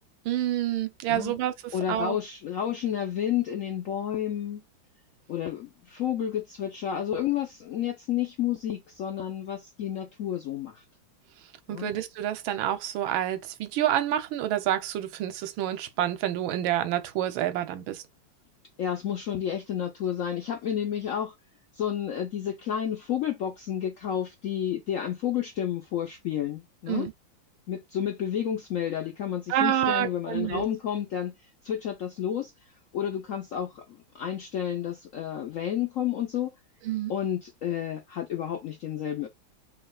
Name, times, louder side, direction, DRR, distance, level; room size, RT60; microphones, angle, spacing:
voice 1, 0.3-1.5 1.9-2.2 11.7-18.0 26.9-27.1 29.5-30.6 36.8-37.1, right 12 dB, 85° right, 1.4 m, -28 dB
voice 2, 1.1-1.4 1.7-4.6 5.3-10.8 11.7-11.9 18.8-21.3 21.7-27.1 27.7-31.3 31.6-32.5 32.9-36.5 37.1-39.3, left 10 dB, 85° left, 0.7 m, -31 dB
5.7 x 2.8 x 2.3 m
omnidirectional pair, 2.2 m